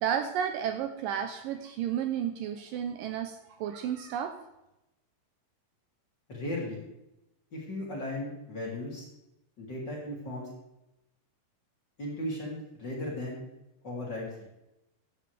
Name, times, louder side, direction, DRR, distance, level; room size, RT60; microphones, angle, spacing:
voice 1, 0.0-4.4, right 9 dB, 75° right, 7 dB, 2.2 m, -32 dB
voice 2, 6.3-6.8 7.5-9.0 9.6-10.5 12.0-13.4 13.8-14.3, left 1 dB, 30° left, -4 dB, 3.6 m, -36 dB
15.5 x 10.0 x 3.5 m, 0.91 s
omnidirectional pair, 4.3 m